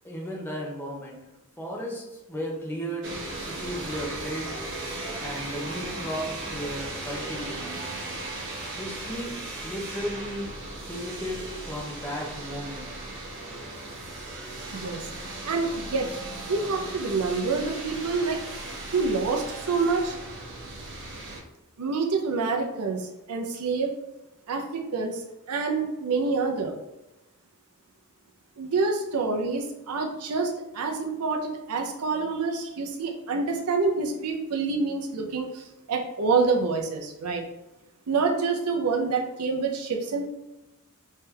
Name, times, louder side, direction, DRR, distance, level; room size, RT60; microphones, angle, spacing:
voice 1, 0.0-1.2 1.6-4.5 5.2-7.7 8.8-9.3 9.6-10.5 10.9-12.8, equal, 10° left, -3 dB, 0.8 m, -35 dB
sound 1, 3.0-21.4, right 2 dB, 60° right, 1.0 m, -37 dB
voice 2, 15.4-16.1 16.5-18.4 18.9-20.2 21.8-23.9 24.5-25.2 25.5-26.7 28.6-37.4 38.1-40.3, right 4 dB, 80° right, 2 dB, 0.6 m, -27 dB
3.3 x 3.2 x 3.3 m, 0.98 s
head